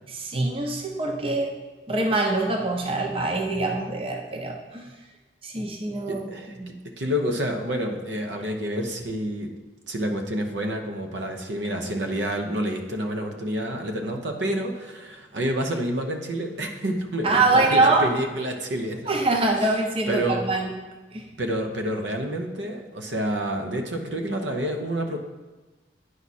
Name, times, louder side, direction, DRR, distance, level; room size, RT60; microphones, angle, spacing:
voice 1, 0.1-1.6 1.9-4.9 5.4-6.8 17.2-18.1 19.1-20.7 21.1-21.3, right 2 dB, 30° right, 2 dB, 0.7 m, -24 dB
voice 2, 6.1-6.6 7.0-9.5 9.9-19.1 20.1-20.4 21.4-25.2, equal, 80° right, 3 dB, 0.9 m, -28 dB
9.6 x 4.7 x 4.2 m, 1.2 s
head